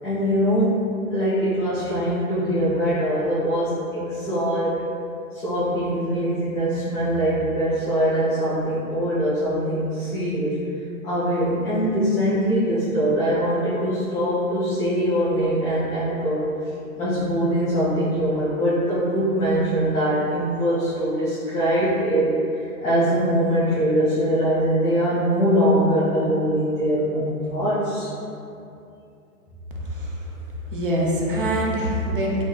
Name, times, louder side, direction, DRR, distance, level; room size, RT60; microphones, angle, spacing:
voice 1, 0.0-0.8 1.1-4.8 5.3-10.6 11.0-16.4 16.9-28.1, equal, 5° left, -16 dB, 1.0 m, -22 dB
voice 2, 29.8-30.1 30.7-32.4, equal, 40° right, -3 dB, 0.4 m, -24 dB
4.8 x 3.6 x 2.3 m, 2.6 s
hypercardioid pair, 170°, 46 cm